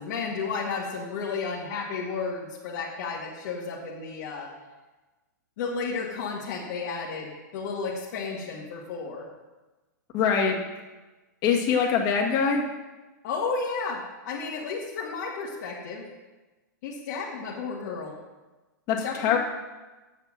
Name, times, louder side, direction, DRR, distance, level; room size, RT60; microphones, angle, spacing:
voice 1, 0.0-4.5 5.6-9.3 13.2-16.0 16.8-18.1 19.0-19.4, left 4 dB, 55° left, -5 dB, 2.2 m, -32 dB
voice 2, 10.1-10.6 11.4-12.6 18.9-19.4, left 6 dB, 35° left, 0 dB, 2.1 m, -23 dB
8.8 x 6.7 x 7.6 m, 1.2 s
hypercardioid pair, 135°, 10 cm